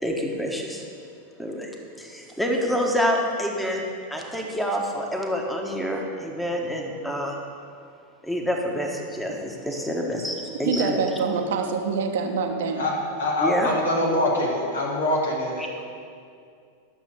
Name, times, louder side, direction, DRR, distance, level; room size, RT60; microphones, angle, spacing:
voice 1, 0.0-0.9 1.4-3.8 4.1-7.4 8.2-11.0 13.4-13.7 15.6-15.7, equal, 5° left, 0 dB, 1.5 m, -27 dB
voice 2, 10.6-12.9, right 5 dB, 55° right, 4 dB, 1.1 m, -26 dB
voice 3, 13.2-15.7, left 1 dB, 70° left, -4 dB, 3.3 m, -24 dB
12.0 x 7.3 x 7.2 m, 2.3 s
figure-of-eight pair, 90°, 0 cm